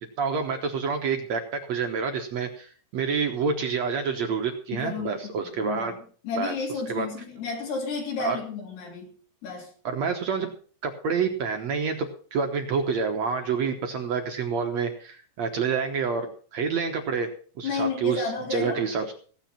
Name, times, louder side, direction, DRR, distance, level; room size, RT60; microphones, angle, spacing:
voice 1, 0.2-6.0 6.4-6.5 6.9-7.1 8.2-8.4 9.8-10.5 10.8-16.3 16.5-17.3 17.6-19.1, right 5 dB, 65° right, 5 dB, 1.7 m, -28 dB
voice 2, 4.7-5.9 6.2-9.1 9.4-9.7 17.6-18.8, left 4 dB, 85° left, -2 dB, 5.4 m, -32 dB
16.5 x 9.0 x 5.7 m, 0.43 s
omnidirectional pair, 4.6 m